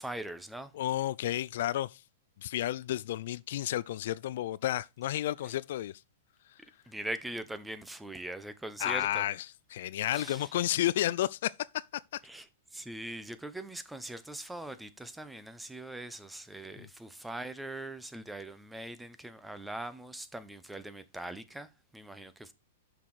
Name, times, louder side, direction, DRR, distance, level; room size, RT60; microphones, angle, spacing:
voice 1, 0.0-0.7 6.9-9.2 10.1-10.5 12.3-12.4 12.7-22.5, right 1 dB, 5° right, 0.8 m, -41 dB
voice 2, 0.7-2.0 2.4-6.0 6.5-6.6 8.8-12.2 16.8-16.9, left 13 dB, 65° left, 0.3 m, -32 dB
6.7 x 5.8 x 4.7 m
hypercardioid pair, 140°, 0 cm